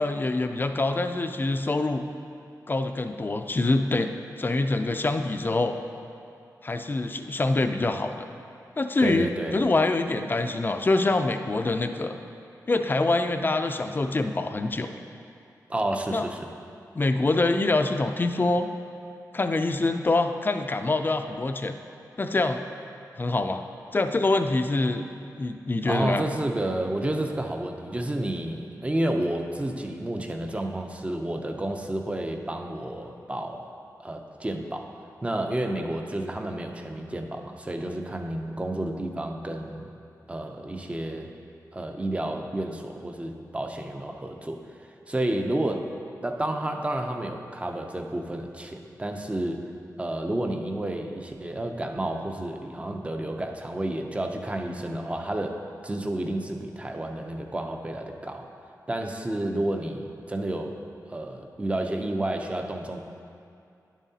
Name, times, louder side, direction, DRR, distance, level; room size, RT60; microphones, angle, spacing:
voice 1, 0.0-2.0 2.7-4.1 4.4-5.8 6.6-8.2 8.8-12.2 12.7-14.9 16.1-16.2 16.9-18.7 19.3-21.7 22.2-22.6 23.2-23.6 23.9-25.0 25.4-26.2, left 2 dB, 30° left, 7 dB, 0.4 m, -25 dB
voice 2, 9.0-9.6 15.7-16.4 25.8-33.7 34.0-34.9 35.2-39.9 40.3-41.3 41.7-44.6 45.1-45.9 46.2-49.6 50.0-58.5 58.9-60.7 61.1-63.0, right 1 dB, 20° right, 4 dB, 0.6 m, -30 dB
10.5 x 7.2 x 2.8 m, 2.5 s
wide cardioid pair, 115°, 7 cm